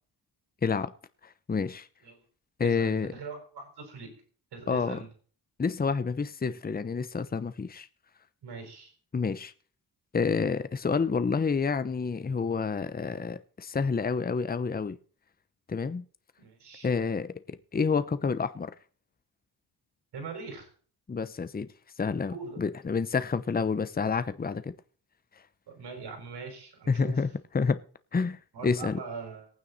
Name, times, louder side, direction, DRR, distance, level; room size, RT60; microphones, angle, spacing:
voice 1, 0.6-0.9 1.2-1.9 2.6-3.1 4.7-5.0 5.6-7.9 9.1-9.5 10.1-15.0 15.7-16.0 16.8-18.7 21.1-21.7 22.0-24.7 26.9-27.8 28.1-29.0, left 5 dB, 25° left, 0.9 m, -29 dB
voice 2, 2.6-4.1 4.5-5.1 8.4-8.9 16.4-16.9 20.1-20.7 22.3-22.6 25.7-27.2 28.5-29.5, right 4 dB, 75° right, 5.4 m, -41 dB
18.5 x 9.2 x 4.1 m
cardioid pair, 100°, 40 cm